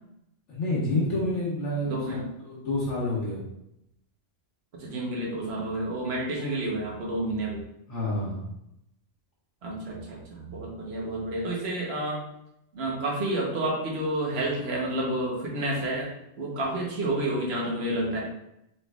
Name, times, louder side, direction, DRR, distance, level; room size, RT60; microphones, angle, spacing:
voice 1, 0.5-2.2 2.4-3.4 7.9-8.5, left 1 dB, 70° left, -7 dB, 1.4 m, -28 dB
voice 2, 1.8-2.2 4.7-7.6 9.6-12.2 12.7-16.1 16.4-18.2, right 1 dB, 60° right, -3 dB, 1.2 m, -30 dB
4.1 x 3.6 x 2.3 m, 0.82 s
omnidirectional pair, 1.3 m